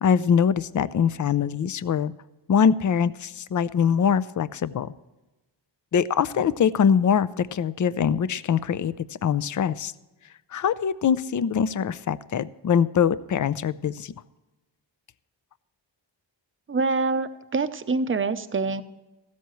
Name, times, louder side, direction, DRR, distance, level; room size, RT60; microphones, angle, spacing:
voice 1, 0.0-2.1 2.5-4.9 5.9-8.9 9.2-9.9 10.5-14.1, left 7 dB, 40° left, 17 dB, 0.5 m, -23 dB
voice 2, 16.7-18.8, right 4 dB, 25° right, 11 dB, 0.7 m, -25 dB
15.0 x 13.0 x 3.1 m, 1.1 s
wide cardioid pair, 100°, 47 cm